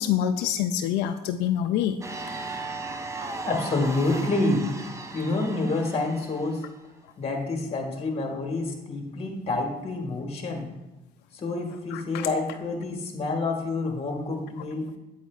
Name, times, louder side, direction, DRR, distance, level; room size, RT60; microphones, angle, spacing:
voice 1, 0.0-2.0 11.9-12.3, left 10 dB, 90° left, 8 dB, 0.4 m, -26 dB
sound 1, 2.0-6.7, right 2 dB, 15° right, 0.6 m, -36 dB
voice 2, 3.4-4.8 5.1-6.6 7.2-10.7 11.3-14.9, left 2 dB, 35° left, 2 dB, 1.5 m, -28 dB
8.3 x 7.8 x 2.4 m, 0.95 s
cardioid pair, 110°, 17 cm